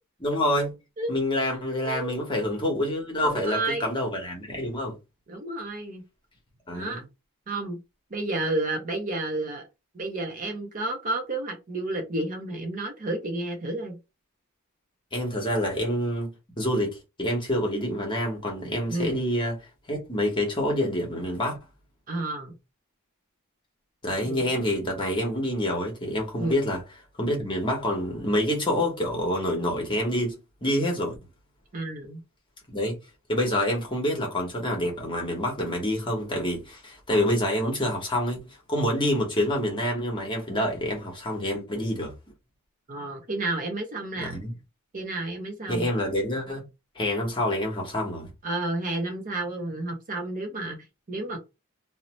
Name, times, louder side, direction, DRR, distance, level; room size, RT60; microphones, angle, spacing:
voice 1, 0.2-0.7 1.1-5.0 6.7-7.0 15.1-19.6 19.9-21.6 24.0-26.8 27.2-31.2 32.7-32.9 33.3-38.4 38.7-42.1 44.2-44.5 45.7-46.7 47.0-48.3, left 1 dB, 20° left, 0.9 m, -27 dB
voice 2, 3.2-3.9 5.3-6.0 6.7-7.0 7.5-7.8 8.1-9.6 9.9-14.0 18.9-19.2 22.1-22.5 24.2-24.6 26.4-26.6 31.7-32.2 42.9-44.4 44.9-45.9 48.4-51.4, right 2 dB, 35° right, 0.6 m, -31 dB
2.7 x 2.1 x 3.0 m
head